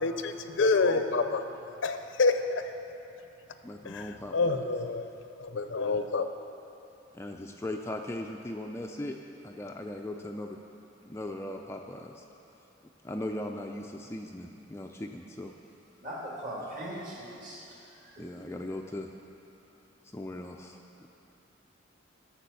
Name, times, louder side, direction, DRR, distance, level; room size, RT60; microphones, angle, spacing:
voice 1, 0.0-1.5 1.8-2.6 3.8-5.1 5.4-6.3, left 3 dB, 70° left, 8 dB, 0.6 m, -27 dB
voice 2, 3.6-4.3 7.1-9.2 9.4-10.6 11.0-12.2 13.0-15.5 18.2-19.1 20.0-20.8, left 1 dB, 15° left, 2 dB, 0.4 m, -38 dB
voice 3, 16.0-18.5, right 1 dB, 45° right, -5 dB, 2.7 m, -40 dB
11.5 x 7.0 x 6.9 m, 2.9 s
head